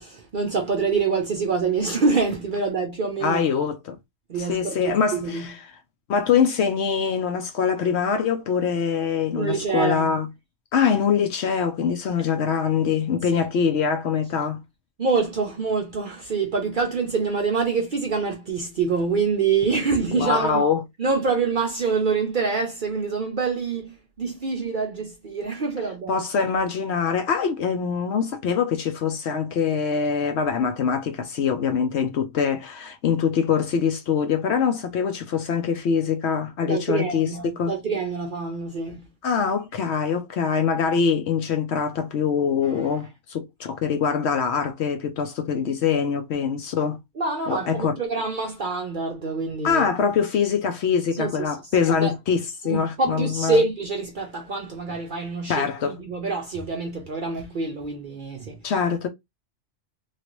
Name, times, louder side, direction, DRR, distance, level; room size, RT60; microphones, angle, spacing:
voice 1, 0.0-3.4 4.3-5.4 9.3-10.1 13.3-13.5 15.0-20.7 21.0-26.2 36.6-39.0 47.2-49.9 51.1-52.1 52.6-58.6, right 4 dB, 50° right, 0.6 m, -26 dB
voice 2, 3.2-4.0 4.4-5.5 6.1-10.3 10.7-14.6 20.1-20.8 26.1-37.3 37.6-37.7 39.2-47.0 47.5-48.0 49.6-53.6 55.5-55.9 58.6-59.1, left 6 dB, 65° left, 0.8 m, -23 dB
3.1 x 2.4 x 3.0 m
omnidirectional pair, 1.4 m